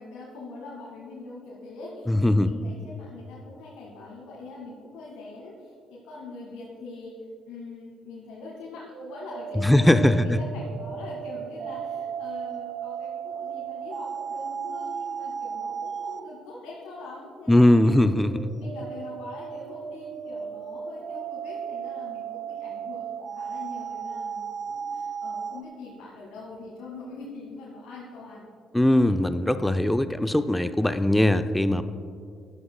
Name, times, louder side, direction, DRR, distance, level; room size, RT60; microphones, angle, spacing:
voice 1, 0.0-18.0 18.5-28.5, left 3 dB, 70° left, -5 dB, 1.8 m, -43 dB
voice 2, 2.1-2.5 9.6-10.4 17.5-18.5 28.7-31.8, left 1 dB, 10° left, 11 dB, 0.4 m, -20 dB
sound 1, 8.9-16.3 18.3-25.6, right 7 dB, 55° right, 0.5 m, -35 dB
14.0 x 11.0 x 2.2 m, 2.3 s
hypercardioid pair, 50°, 0 cm